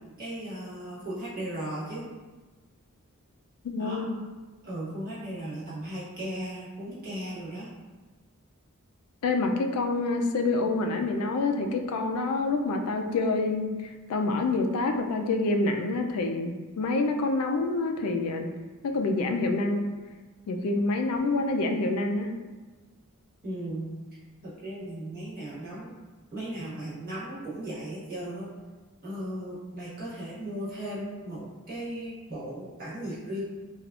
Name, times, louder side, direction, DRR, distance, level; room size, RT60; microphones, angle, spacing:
voice 1, 0.2-2.0 3.8-4.0 4.6-7.7 23.4-23.9 24.4-25.9 26.3-28.5 29.0-33.4, right 1 dB, 45° right, -9 dB, 1.1 m, -36 dB
voice 2, 3.6-4.2 9.2-18.5 18.8-19.9 20.5-22.3, left 3 dB, 75° left, 4 dB, 0.3 m, -27 dB
3.3 x 2.3 x 2.3 m, 1.3 s
head